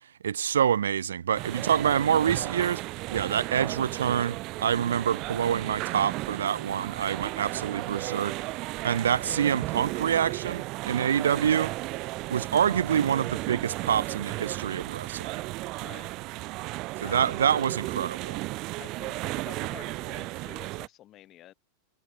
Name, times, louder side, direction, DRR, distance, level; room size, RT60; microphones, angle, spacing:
voice 1, 0.2-2.8 3.1-8.4 8.8-11.7 12.3-15.5 17.0-18.4, right 8 dB, 65° right, 0.3 m, -26 dB
sound 1, 1.3-20.9, right 21 dB, 40° right, 0.9 m, -34 dB
voice 2, 15.8-16.1 17.0-17.4 18.8-21.5, left 14 dB, 35° left, 1.6 m, -48 dB
figure-of-eight pair, 90°, 0 cm